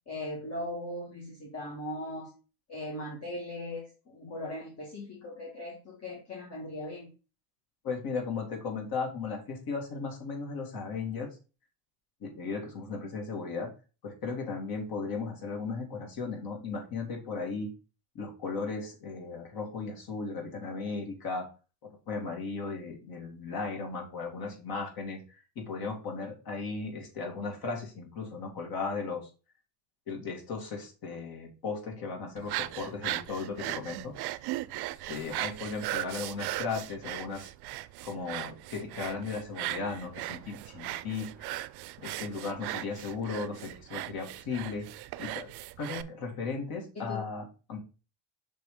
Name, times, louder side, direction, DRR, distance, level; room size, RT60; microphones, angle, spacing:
voice 1, 0.1-2.3 2.7-7.1 46.9-47.3, left 1 dB, 30° left, -2 dB, 1.5 m, -39 dB
voice 2, 7.8-11.3 12.2-13.7 14.0-17.7 18.1-21.5 21.8-29.3 30.1-34.1 35.1-37.5 38.0-41.6 42.0-44.9 45.2-45.5 45.8-47.8, left 4 dB, 50° left, 2 dB, 2.3 m, -36 dB
sound 1, 32.4-46.0, right 17 dB, 55° right, 0.5 m, -38 dB
6.0 x 3.6 x 4.9 m, 0.34 s
cardioid pair, 125°, 47 cm